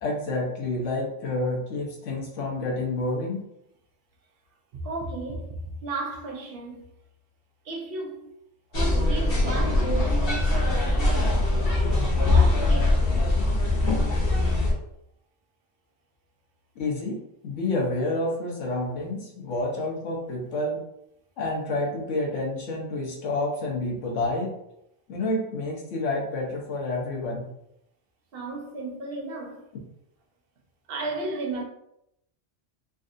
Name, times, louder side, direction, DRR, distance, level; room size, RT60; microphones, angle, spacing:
voice 1, 0.0-3.4 16.8-17.2 17.4-20.8 21.4-24.5 25.1-27.4, left 2 dB, 80° left, 1.3 m, -29 dB
voice 2, 4.8-6.9 7.6-8.3 8.7-11.8 12.1-13.2 28.3-29.7 30.9-31.6, right 2 dB, 60° right, 0.7 m, -34 dB
sound 1, 8.7-14.7, left 2 dB, 55° left, 1.0 m, -22 dB
4.0 x 2.5 x 2.6 m
omnidirectional pair, 1.2 m